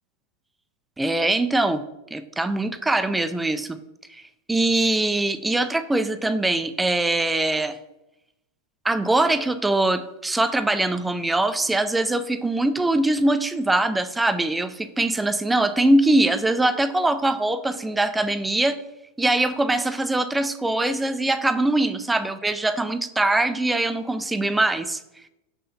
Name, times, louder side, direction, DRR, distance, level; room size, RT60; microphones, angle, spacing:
voice 1, 1.0-1.8 2.1-3.8 4.1-4.2 4.5-7.8 8.8-18.8 19.2-25.0, right 2 dB, 5° right, 11 dB, 0.4 m, -22 dB
6.5 x 5.7 x 4.1 m, 0.88 s
supercardioid pair, 145°, 0 cm